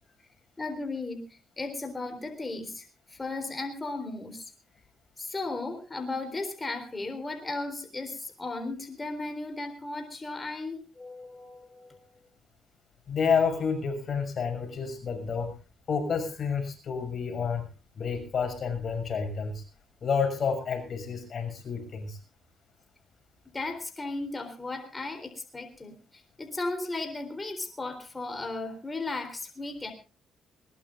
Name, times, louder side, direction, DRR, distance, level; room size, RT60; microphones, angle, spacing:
voice 1, 0.6-4.5 5.2-12.1 23.5-29.9, left 2 dB, 20° left, 6 dB, 3.7 m, -36 dB
voice 2, 13.1-15.5 15.9-17.7 18.0-19.6 20.0-22.2, left 6 dB, 50° left, 6 dB, 6.5 m, -29 dB
21.0 x 20.0 x 2.5 m, 0.33 s
cardioid pair, 90°, 0 cm